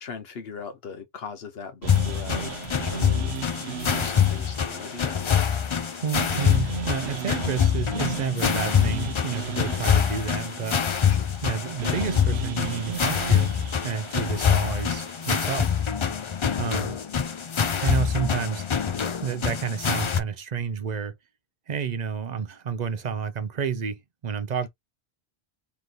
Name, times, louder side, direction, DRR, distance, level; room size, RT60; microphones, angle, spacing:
voice 1, 0.0-2.5 2.8-3.3 3.9-5.3 11.1-11.3, left 6 dB, 70° left, 1.0 m, -40 dB
sound 1, 1.8-16.0, right 7 dB, 75° right, 1.0 m, -37 dB
sound 2, 1.9-20.2, left 8 dB, 45° left, 0.4 m, -25 dB
Drum kit, 2.6-2.8 3.4-3.7 4.6-4.7 5.5-5.6 6.2-6.6 7.4-7.6 8.4-8.5 8.9-9.0 9.4-9.5 10.1-10.2, left 1 dB, 20° left, 1.3 m, -46 dB
voice 2, 6.0-10.8 11.4-13.5 13.8-15.8 16.6-17.0 17.8-18.6 19.2-21.2 21.7-24.7, right 6 dB, 50° right, 0.5 m, -30 dB
3.1 x 3.0 x 3.9 m
omnidirectional pair, 1.1 m